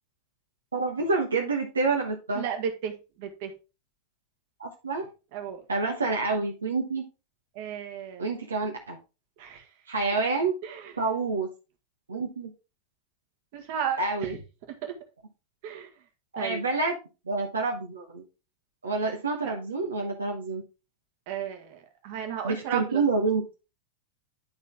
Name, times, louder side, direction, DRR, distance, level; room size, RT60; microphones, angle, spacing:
voice 1, 0.7-2.4 4.6-5.1 5.7-7.0 8.2-9.0 9.9-10.6 11.0-11.5 12.1-12.5 14.0-14.4 16.3-16.9 17.3-18.2 18.8-20.6 22.4-23.4, right 3 dB, 75° right, 1 dB, 1.1 m, -28 dB
voice 2, 2.3-3.5 5.3-5.6 7.5-8.3 9.4-9.7 10.6-10.9 13.5-14.4 14.8-14.9 15.6-15.9 16.3-16.6 19.4-19.6 21.3-23.0, right 8 dB, 50° right, 5 dB, 1.6 m, -34 dB
11.0 x 4.1 x 3.5 m, 0.30 s
figure-of-eight pair, 90°, 0 cm